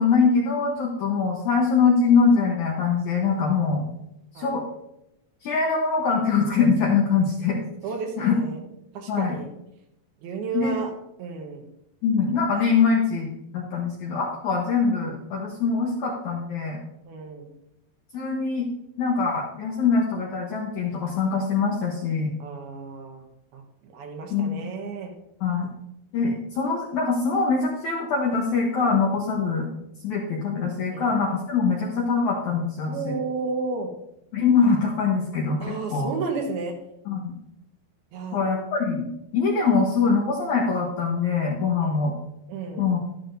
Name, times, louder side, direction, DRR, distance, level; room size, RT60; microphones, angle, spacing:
voice 1, 0.0-3.8 4.4-4.6 5.4-7.6 8.2-8.4 9.1-9.4 10.5-10.8 12.0-16.8 18.1-18.7 19.0-22.3 24.3-24.6 25.4-25.7 26.1-29.7 30.0-33.1 34.3-36.1 37.1-37.3 38.3-39.1 39.3-42.1 42.8-43.0, left 5 dB, 70° left, -1 dB, 1.9 m, -23 dB
voice 2, 7.8-8.6 8.9-9.5 10.2-10.9 11.2-11.6 17.1-17.5 22.4-23.2 23.5-25.1 30.9-31.1 32.9-33.9 35.6-36.8 38.1-38.4 41.8-42.1 42.5-42.9, right 4 dB, 70° right, 2 dB, 3.1 m, -32 dB
12.0 x 11.0 x 2.7 m, 0.83 s
omnidirectional pair, 4.8 m